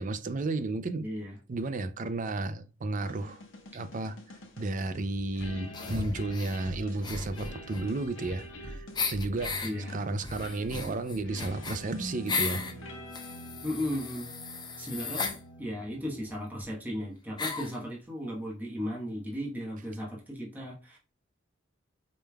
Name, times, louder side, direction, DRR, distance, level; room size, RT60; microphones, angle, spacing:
voice 1, 0.0-1.0 1.5-3.4 3.7-4.2 4.6-9.6 9.9-13.0, right 2 dB, 40° right, 0.5 m, -33 dB
voice 2, 1.0-1.3 9.6-10.0 13.6-14.3 14.8-21.0, equal, 10° right, 1.1 m, -36 dB
sound 1, 3.0-16.5, left 1 dB, 75° left, 1.0 m, -45 dB
sound 2, 5.7-6.6 7.0-8.6 8.9-9.7 10.2-12.7 13.1-15.4 16.3-16.4 16.6-16.7 17.4-17.8, left 4 dB, 25° left, 0.6 m, -35 dB
5.1 x 3.3 x 2.2 m
head